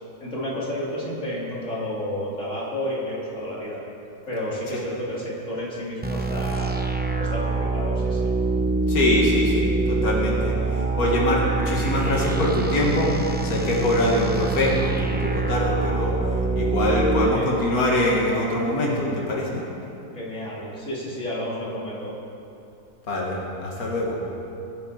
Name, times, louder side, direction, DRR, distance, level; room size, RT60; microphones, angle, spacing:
voice 1, 0.2-3.8 4.3-6.9 7.2-8.3 17.2-17.5 20.2-22.1, left 1 dB, 50° left, -6 dB, 3.1 m, -31 dB
sound 1, 6.0-17.3, right 3 dB, 15° right, 0.3 m, -25 dB
voice 2, 8.9-13.1 13.4-16.2 16.6-19.5 23.1-24.2, left 1 dB, 65° left, -3 dB, 2.5 m, -23 dB
22.5 x 10.5 x 4.1 m, 2.8 s
omnidirectional pair, 1.7 m